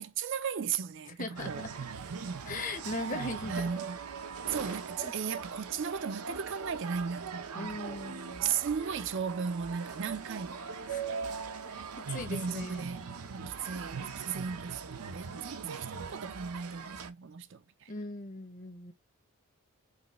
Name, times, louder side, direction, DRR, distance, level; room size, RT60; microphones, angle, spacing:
voice 1, 0.0-1.7 3.5-4.0 4.5-8.2 8.4-11.0 12.3-17.9, right 6 dB, 55° right, 0.5 m, -36 dB
voice 2, 1.2-1.7 2.4-3.8 4.6-5.1 7.5-8.5 10.9-11.1 11.7-12.9 14.1-14.2 15.3-15.4 17.9-18.9, left 2 dB, 35° left, 1.0 m, -40 dB
sound 1, 1.3-17.1, right 6 dB, 85° right, 0.7 m, -40 dB
5.2 x 3.2 x 3.0 m
head